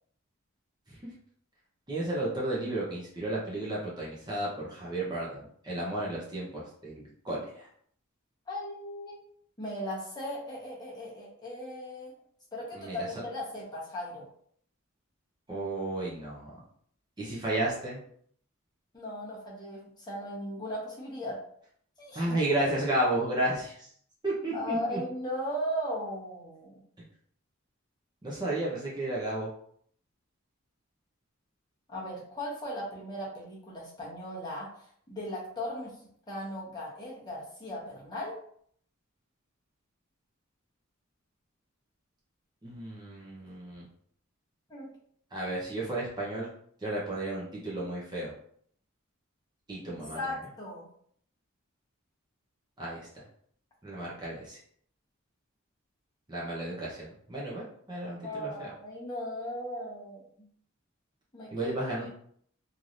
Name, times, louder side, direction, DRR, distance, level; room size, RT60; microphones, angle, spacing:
voice 1, 1.9-7.7 12.7-13.1 15.5-16.6 17.2-18.0 22.1-23.9 24.2-25.0 28.2-29.5 42.6-43.8 45.3-46.5 46.8-48.3 49.7-50.3 52.8-53.1 53.8-54.6 56.3-58.7 61.5-62.1, right 1 dB, 20° right, -6 dB, 0.7 m, -33 dB
voice 2, 8.5-9.2 9.6-12.1 12.5-14.3 18.9-21.4 22.0-22.2 24.5-26.8 31.9-34.7 35.1-35.9 36.3-38.4 44.7-44.9 49.9-50.9 58.2-60.5 61.3-61.7 62.0-62.1, equal, 20° left, -6 dB, 1.0 m, -37 dB
3.2 x 2.8 x 2.5 m, 0.62 s
head